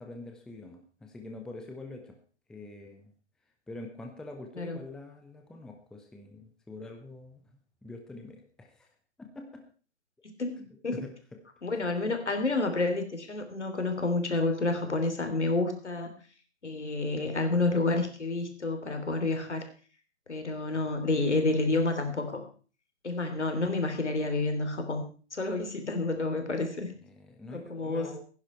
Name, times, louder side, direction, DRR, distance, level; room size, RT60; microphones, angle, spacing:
voice 1, 0.0-2.2 2.5-3.1 3.7-7.4 7.8-8.9 9.2-9.6 10.6-11.1 11.7-11.8 27.0-28.2, left 2 dB, ahead, 3 dB, 0.8 m, -45 dB
voice 2, 11.6-16.1 16.6-19.6 20.3-22.4 23.0-25.0 25.3-26.9 27.5-28.2, left 2 dB, 75° left, 6 dB, 3.4 m, -29 dB
16.0 x 10.5 x 4.5 m, 0.38 s
figure-of-eight pair, 125°, 35 cm